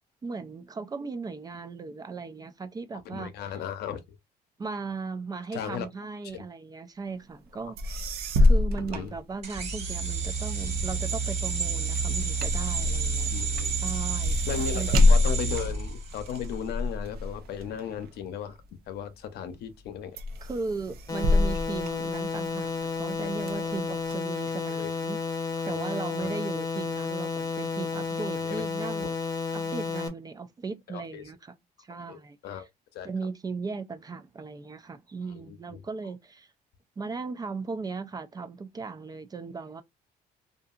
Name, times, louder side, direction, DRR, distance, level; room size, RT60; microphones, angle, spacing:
voice 1, 0.2-3.6 4.6-8.1 8.4-13.3 13.8-14.4 14.7-15.2 20.4-29.2 29.5-32.7 33.0-36.5 37.0-39.8, right 4 dB, 25° right, 0.3 m, -37 dB
voice 2, 3.0-4.2 5.5-5.9 6.3-6.4 8.7-9.1 13.3-13.8 14.4-18.6 18.9-20.2 23.6-23.7 24.7-24.9 25.7-25.8 26.2-26.3 28.2-28.6 29.0-29.1 30.9-31.2 32.1-32.7 32.9-33.1 35.3-35.8, left 8 dB, 70° left, 0.7 m, -36 dB
sound 1, 7.5-7.6 7.8-9.9 10.3-19.0 19.5-19.9 20.2-22.7 23.1-24.1, left 2 dB, 65° right, 0.6 m, -27 dB
sound 2, 9.4-16.5, right 5 dB, 40° right, 1.1 m, -30 dB
sound 3, 21.1-30.1, left 4 dB, 20° left, 0.7 m, -32 dB
2.7 x 2.4 x 2.4 m
cardioid pair, 110°, 17 cm